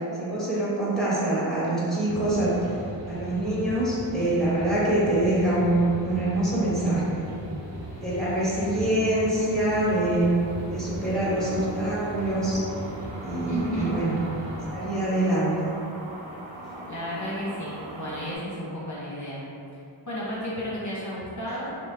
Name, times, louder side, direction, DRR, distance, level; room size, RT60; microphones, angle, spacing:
voice 1, 0.2-2.7 3.1-7.3 8.0-10.3 10.7-12.6 13.2-14.1 14.7-15.7 21.6-21.7, right 1 dB, ahead, -9 dB, 1.3 m, -25 dB
sound 1, 2.1-14.7, equal, 50° right, 1.0 m, -38 dB
sound 2, 7.2-18.3, right 2 dB, 75° right, 0.7 m, -41 dB
voice 2, 13.5-14.0 16.9-19.4 20.1-21.7, equal, 40° left, -7 dB, 0.8 m, -33 dB
4.9 x 2.1 x 3.2 m, 2.6 s
wide cardioid pair, 60°, 46 cm